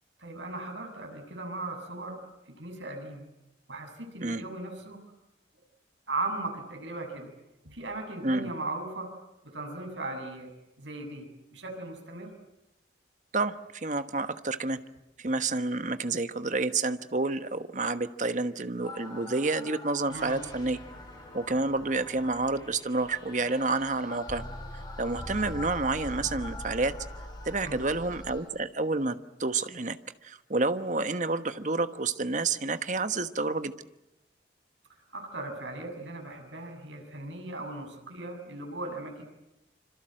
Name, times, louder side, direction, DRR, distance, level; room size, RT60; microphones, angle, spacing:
voice 1, 0.2-2.2 2.6-3.3 3.7-5.0 6.1-7.3 7.6-9.1 9.4-10.5 10.8-11.2 11.5-12.3 20.1-20.4 27.6-27.8 35.1-39.2, right 2 dB, 80° right, 4 dB, 7.3 m, -37 dB
voice 2, 13.3-14.8 15.2-20.8 21.3-24.4 24.7-26.9 27.4-30.0 30.2-33.7, right 3 dB, 40° right, 10 dB, 1.2 m, -29 dB
sound 1, 18.8-28.4, left 1 dB, 20° left, 6.4 m, -42 dB
26.5 x 26.0 x 7.8 m, 0.92 s
head